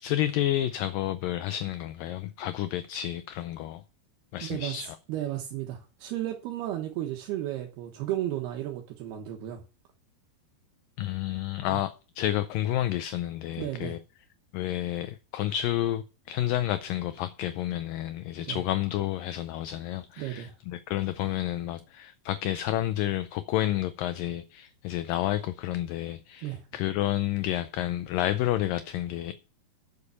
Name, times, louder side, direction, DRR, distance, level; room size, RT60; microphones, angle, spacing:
voice 1, 0.0-3.8 4.3-5.0 11.0-14.0 14.5-29.3, left 13 dB, 80° left, 2.1 m, -30 dB
voice 2, 4.4-9.6 11.7-11.8 13.6-14.0 18.4-18.6 20.2-20.6 26.4-26.7, right 13 dB, 85° right, 3.2 m, -34 dB
9.6 x 7.0 x 6.9 m
omnidirectional pair, 4.5 m